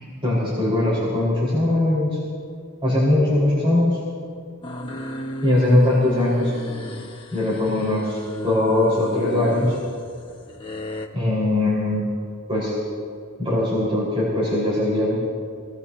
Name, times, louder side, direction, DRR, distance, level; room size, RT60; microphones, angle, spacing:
voice 1, 0.2-2.2 2.8-4.0 5.4-6.5 7.3-9.8 11.1-12.0 12.5-12.7 13.4-15.2, left 1 dB, 25° right, -8 dB, 4.6 m, -20 dB
sound 1, 4.6-11.1, left 1 dB, 25° left, 1.3 m, -34 dB
25.5 x 19.0 x 2.8 m, 2.3 s
head